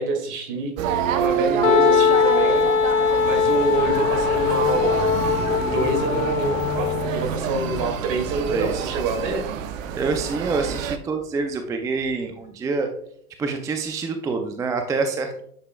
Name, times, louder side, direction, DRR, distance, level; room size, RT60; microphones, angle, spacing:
voice 1, 0.0-2.7 3.2-5.1 5.6-9.5, right 3 dB, 45° right, 5 dB, 2.2 m, -27 dB
sound 1, 0.8-11.0, right 8 dB, 60° right, 0.8 m, -28 dB
Wind instrument woodwind instrument, 1.6-7.3, left 6 dB, 80° left, 0.8 m, -21 dB
sound 2, 2.8-11.3 12.0-12.1, left 2 dB, 20° left, 2.8 m, -35 dB
voice 2, 8.5-8.9 9.9-12.9 13.4-15.3, right 4 dB, 10° right, 6 dB, 0.4 m, -26 dB
10.0 x 6.6 x 2.2 m, 0.65 s
hypercardioid pair, 95°, 44 cm